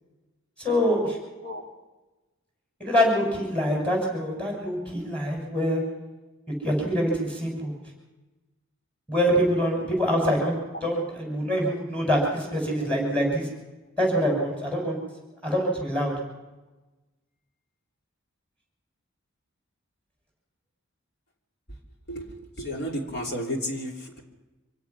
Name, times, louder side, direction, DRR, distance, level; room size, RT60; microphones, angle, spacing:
voice 1, 0.6-1.2 2.8-5.8 6.6-7.7 9.1-13.5 14.0-15.0 15.4-16.1, equal, 5° left, -1 dB, 6.7 m, -25 dB
voice 2, 22.1-24.2, equal, 50° left, 2 dB, 3.1 m, -32 dB
25.0 x 17.0 x 6.1 m, 1.1 s
head